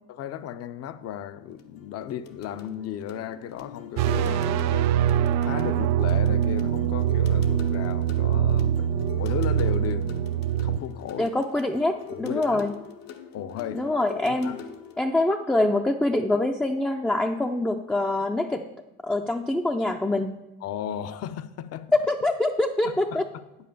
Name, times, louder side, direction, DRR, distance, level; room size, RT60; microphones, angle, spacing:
voice 1, 0.1-4.9 5.4-11.3 12.2-12.7 13.3-13.9 14.3-14.6 20.6-21.9 22.8-23.2, left 9 dB, 45° left, 0.6 m, -35 dB
sound 1, 1.4-15.0, left 8 dB, 75° left, 1.1 m, -43 dB
sound 2, 4.0-10.8, right 10 dB, 50° right, 0.5 m, -23 dB
voice 2, 11.2-12.7 13.7-14.6 15.0-18.6 19.0-20.4 22.1-23.2, left 2 dB, 5° left, 0.4 m, -25 dB
8.7 x 5.5 x 6.7 m
supercardioid pair, 95°, 34 cm